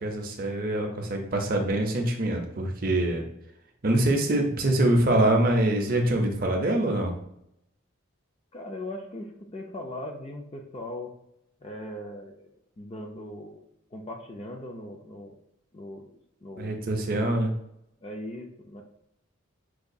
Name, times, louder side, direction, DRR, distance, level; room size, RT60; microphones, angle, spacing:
voice 1, 0.0-3.2 3.8-7.1 16.6-17.5, right 1 dB, 40° right, 3 dB, 0.5 m, -24 dB
voice 2, 8.5-11.1 11.6-12.5 12.8-13.6 13.9-15.3 15.7-16.1 16.4-16.8 18.0-18.8, left 1 dB, 25° left, 3 dB, 0.3 m, -39 dB
4.7 x 2.3 x 2.6 m, 0.77 s
head